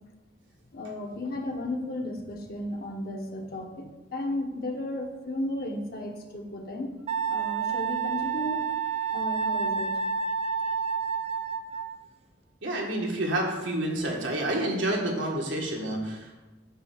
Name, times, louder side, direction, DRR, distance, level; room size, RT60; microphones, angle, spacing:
voice 1, 0.7-7.0 7.3-8.7 9.1-10.0, left 1 dB, 55° left, 2 dB, 1.2 m, -34 dB
Wind instrument woodwind instrument, 7.1-12.1, right 6 dB, 35° right, 0.4 m, -29 dB
voice 2, 12.6-16.4, right 1 dB, 90° right, -1 dB, 1.7 m, -29 dB
8.9 x 3.4 x 6.6 m, 1.1 s
head